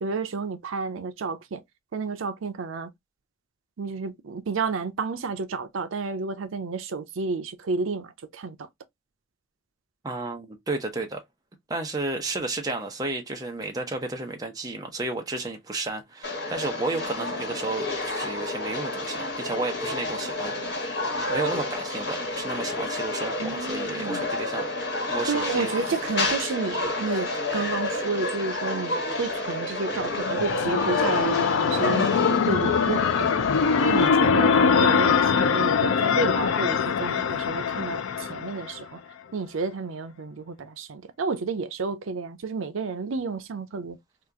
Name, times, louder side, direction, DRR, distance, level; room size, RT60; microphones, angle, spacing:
voice 1, 0.0-1.6 1.9-2.9 3.8-8.6 23.4-24.2 25.3-33.5 33.8-39.0 39.3-44.0, right 4 dB, 85° right, 0.5 m, -31 dB
voice 2, 10.0-11.2 11.7-20.9 21.2-24.7 25.1-25.8 33.9-34.0, right 2 dB, 20° right, 0.7 m, -32 dB
sound 1, 16.2-34.1, left 2 dB, 60° left, 1.4 m, -30 dB
sound 2, 30.0-38.8, left 6 dB, 90° left, 0.4 m, -23 dB
2.9 x 2.4 x 3.5 m
head